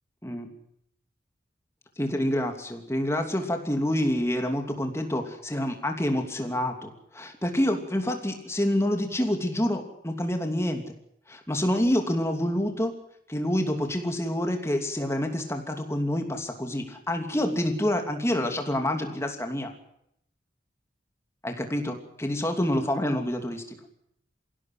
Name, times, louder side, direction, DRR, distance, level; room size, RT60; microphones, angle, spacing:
voice 1, 0.2-0.5 2.0-10.9 11.3-13.0 13.3-19.7 21.4-23.8, left 1 dB, 15° left, 4 dB, 2.9 m, -27 dB
23.5 x 16.5 x 7.9 m, 0.73 s
head